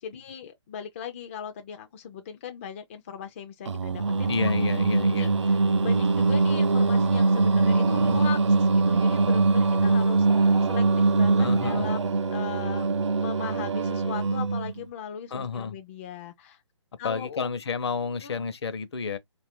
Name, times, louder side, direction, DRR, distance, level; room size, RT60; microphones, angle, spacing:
voice 1, 0.0-4.3 5.0-12.9 13.2-16.6 17.0-17.5 18.2-18.4, left 8 dB, 25° left, 0.4 m, -39 dB
Singing, 3.7-14.8, right 3 dB, 75° right, 0.5 m, -23 dB
voice 2, 4.3-5.3 7.9-8.2 11.4-11.9 15.3-15.8 17.0-19.2, left 5 dB, 60° left, 0.7 m, -30 dB
2.5 x 2.5 x 3.5 m
figure-of-eight pair, 145°, 15 cm